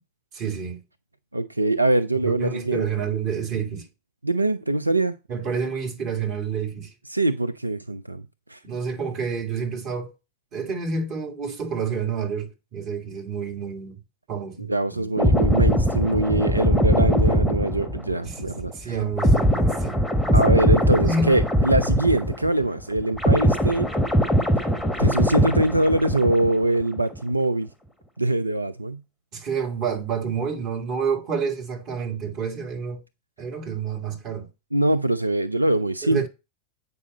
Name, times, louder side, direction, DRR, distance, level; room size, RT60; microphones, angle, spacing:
voice 1, 0.3-0.8 2.2-3.9 5.3-6.9 8.6-10.1 10.5-14.0 14.3-15.1 18.2-20.6 21.0-21.4 29.3-33.0 33.4-34.5 36.0-36.3, right 5 dB, 40° right, 2.1 m, -29 dB
voice 2, 1.3-2.9 4.2-5.2 7.1-8.2 8.5-8.6 14.7-19.0 20.3-23.9 25.0-27.7 28.2-29.0 34.7-36.3, right 1 dB, 85° right, 0.4 m, -23 dB
sound 1, 15.2-22.7 22.9-26.7 26.9-27.2, equal, ahead, 1.0 m, -21 dB
8.3 x 5.5 x 4.1 m
figure-of-eight pair, 90°, 0 cm